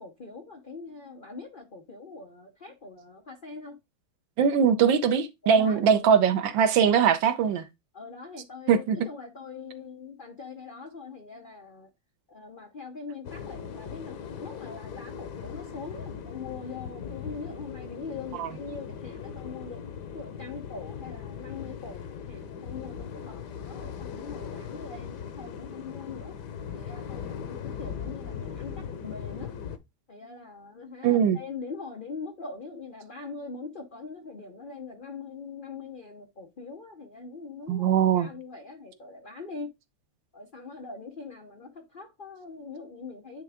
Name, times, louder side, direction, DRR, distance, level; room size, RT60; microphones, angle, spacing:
voice 1, 0.0-3.8 5.4-6.0 7.9-11.9 12.3-19.8 20.1-26.3 26.7-29.5 30.1-37.8 38.2-39.7 40.3-43.4, left 4 dB, 85° left, 0.4 m, -42 dB
voice 2, 4.4-7.6 8.7-9.0 18.3-18.5 31.0-31.4 37.7-38.3, right 7 dB, 70° right, 1.4 m, -21 dB
sound 1, 13.2-29.8, left 7 dB, 65° left, 1.2 m, -39 dB
9.4 x 3.4 x 3.4 m
omnidirectional pair, 2.3 m